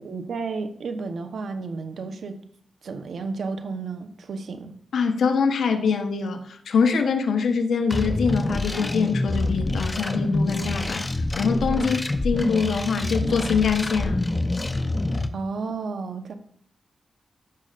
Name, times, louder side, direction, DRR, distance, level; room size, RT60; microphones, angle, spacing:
voice 1, 0.0-2.3 2.8-4.7 11.8-12.0 15.3-16.3, right 4 dB, 80° right, 1.0 m, -32 dB
voice 2, 4.9-11.1 11.4-14.3, left 5 dB, 85° left, 1.0 m, -24 dB
sound 1, 7.9-15.3, left 2 dB, 25° left, 0.8 m, -26 dB
14.0 x 6.5 x 2.5 m
cardioid pair, 65°, 0 cm